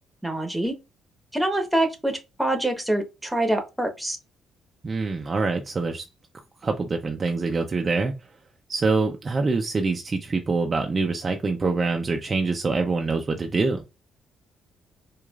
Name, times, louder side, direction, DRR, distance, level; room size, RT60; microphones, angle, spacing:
voice 1, 0.2-0.7 1.3-4.2, right 1 dB, 5° right, 1.1 m, -25 dB
voice 2, 4.8-6.0 6.6-8.1 8.7-13.8, right 3 dB, 35° right, 0.5 m, -25 dB
4.8 x 2.5 x 2.4 m
cardioid pair, 90°, 0 cm